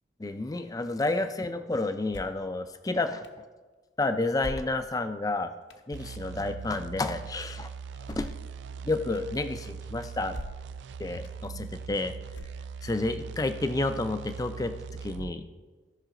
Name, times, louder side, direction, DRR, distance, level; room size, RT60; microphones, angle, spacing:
voice 1, 0.2-3.2 4.0-5.5 5.9-7.7 8.1-8.3 8.8-10.4 11.0-12.2 12.8-14.7 15.0-15.4, left 2 dB, 20° left, 9 dB, 0.4 m, -30 dB
sound 1, 2.1-2.5 3.2-3.3 4.4-5.1 5.7-5.8 8.0-8.5 9.1-9.2 10.3-10.8 11.2-11.3 12.3-12.9, left 1 dB, 65° left, 0.7 m, -41 dB
sound 2, 5.9-15.4, right 6 dB, 65° right, 0.3 m, -41 dB
17.0 x 5.8 x 3.7 m, 1.4 s
head